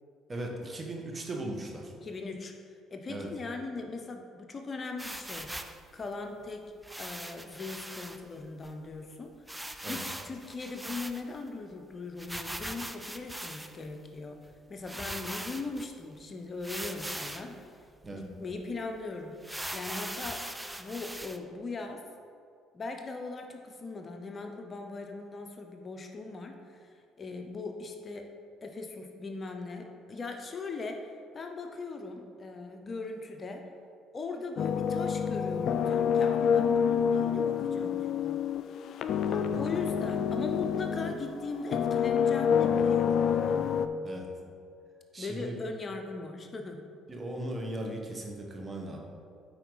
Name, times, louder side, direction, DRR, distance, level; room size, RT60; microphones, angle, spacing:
voice 1, 0.3-1.9 3.1-3.3 9.8-10.0 18.0-18.2 39.3-39.4 44.0-44.3 45.1-45.6 47.1-49.0, right 1 dB, 30° right, 0 dB, 1.4 m, -38 dB
voice 2, 2.0-2.5 2.9-5.5 5.9-17.8 18.1-19.3 19.7-22.0 22.7-28.3 28.6-33.6 34.1-38.5 39.4-43.8 45.2-46.9, left 3 dB, 40° left, 4 dB, 0.7 m, -39 dB
sound 1, 5.0-5.8 6.8-8.2 8.6-8.7 8.9-9.0 9.5-11.5 12.2-13.9 14.5-14.6 14.8-15.9 16.6-17.5 18.0-18.1 18.5-18.6 19.4-21.4, right 1 dB, 5° right, 0.5 m, -40 dB
sound 2, 34.6-41.3 41.7-43.9, left 7 dB, 60° left, 0.3 m, -27 dB
8.9 x 4.6 x 4.0 m, 2.3 s
hypercardioid pair, 65°, 0 cm